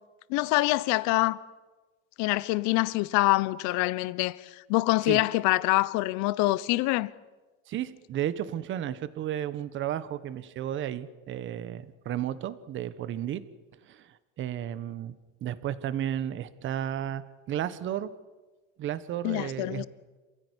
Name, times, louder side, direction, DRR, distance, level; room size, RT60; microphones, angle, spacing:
voice 1, 0.3-1.4 2.2-7.1 19.2-19.9, left 20 dB, 55° left, 1.0 m, -25 dB
voice 2, 7.7-13.4 13.9-15.1 15.4-17.2 17.5-18.1 18.8-19.9, right 10 dB, 35° right, 1.3 m, -33 dB
27.5 x 16.0 x 9.9 m
cardioid pair, 150°, 34 cm